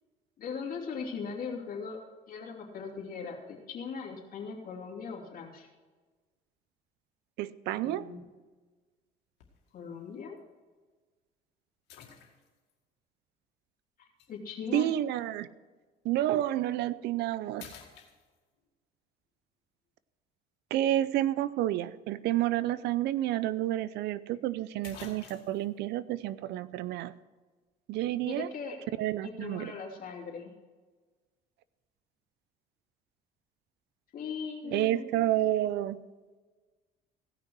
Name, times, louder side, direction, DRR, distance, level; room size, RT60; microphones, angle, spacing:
voice 1, 0.4-2.0 2.3-5.7 7.8-8.3 9.7-10.4 14.0-14.9 28.2-28.8 29.2-30.5 34.1-35.0, left 5 dB, 55° left, 0 dB, 2.8 m, -39 dB
voice 2, 7.4-8.1 14.7-15.5 16.0-17.7 20.7-27.1 27.9-28.5 29.0-29.7 34.7-36.0, right 13 dB, 80° right, 17 dB, 0.6 m, -30 dB
sound 1, 9.4-9.7 10.4-10.5 11.9-12.7 14.2-14.3 16.5-16.7 17.1-17.3 17.6-18.7 22.8-22.9 23.2-23.3 24.3-24.4 24.8-25.7, left 8 dB, 90° left, 2.2 m, -50 dB
17.0 x 6.0 x 6.4 m, 1.4 s
cardioid pair, 110°, 17 cm